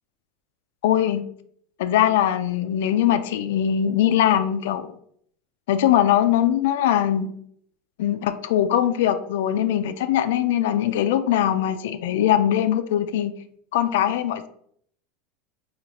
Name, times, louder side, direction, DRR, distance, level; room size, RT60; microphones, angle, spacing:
voice 1, 0.8-1.2 1.8-4.9 5.7-7.3 8.0-13.3 13.7-14.5, left 11 dB, 75° left, 11 dB, 0.3 m, -21 dB
4.4 x 2.3 x 2.9 m, 0.66 s
supercardioid pair, 175°, 0 cm